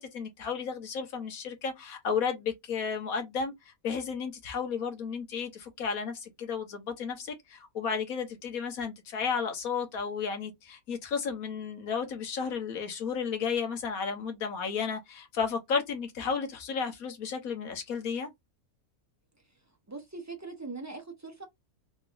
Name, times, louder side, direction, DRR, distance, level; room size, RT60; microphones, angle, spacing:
voice 1, 0.0-3.5 3.8-18.3, left 6 dB, 70° left, 1.4 m, -33 dB
voice 2, 19.9-21.5, right 3 dB, 20° right, 0.4 m, -41 dB
3.7 x 2.9 x 2.5 m
omnidirectional pair, 1.6 m